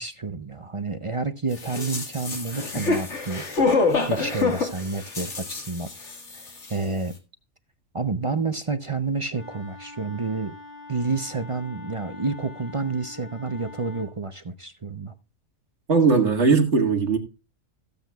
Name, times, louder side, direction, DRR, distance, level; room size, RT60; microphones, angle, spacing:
voice 1, 0.0-3.5 4.1-5.9 6.3-7.2 7.9-10.5 10.9-15.1, right 4 dB, 35° right, 0.5 m, -29 dB
sound 1, 1.6-6.4 6.6-6.7, left 3 dB, 65° left, 2.2 m, -26 dB
Wind instrument woodwind instrument, 9.3-14.2, left 4 dB, 30° left, 2.3 m, -44 dB
voice 2, 15.9-17.2, right 4 dB, 60° right, 2.2 m, -19 dB
17.0 x 8.2 x 2.3 m
omnidirectional pair, 1.3 m